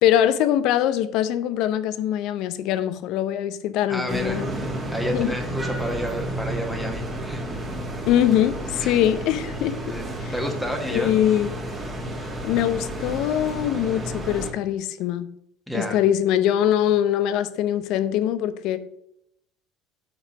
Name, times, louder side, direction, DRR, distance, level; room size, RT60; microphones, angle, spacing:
voice 1, 0.0-4.5 5.1-5.4 8.1-9.8 10.2-10.3 10.9-11.5 12.4-15.3 15.7-18.8, left 11 dB, 65° left, 13 dB, 0.5 m, -22 dB
voice 2, 3.9-4.4 4.9-7.5 8.8-9.0 9.8-11.1 15.7-16.0, equal, ahead, 2 dB, 1.2 m, -30 dB
sound 1, 4.1-14.5, right 1 dB, 20° right, 1.7 m, -31 dB
5.5 x 4.2 x 5.9 m, 0.76 s
hypercardioid pair, 85°, 0 cm